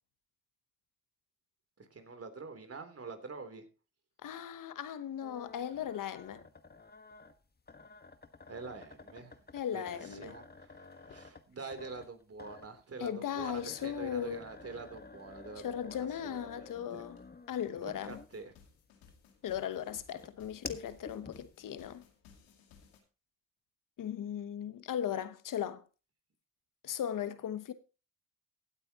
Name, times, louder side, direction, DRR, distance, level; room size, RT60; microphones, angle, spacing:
voice 1, 1.8-3.6 8.5-9.4 9.7-17.0 17.8-18.5, right 4 dB, 45° right, 3.3 m, -46 dB
voice 2, 4.2-6.4 9.5-10.3 13.0-14.4 15.6-17.2 17.5-18.2 19.4-22.0 24.0-25.8 26.8-27.7, left 9 dB, 65° left, 1.1 m, -37 dB
sound 1, 5.2-18.5 19.0-21.8, left 3 dB, 30° left, 1.5 m, -51 dB
sound 2, 17.2-17.3 17.6-23.0, left 6 dB, 90° left, 2.3 m, -61 dB
16.0 x 8.9 x 2.9 m
supercardioid pair, 50°, 34 cm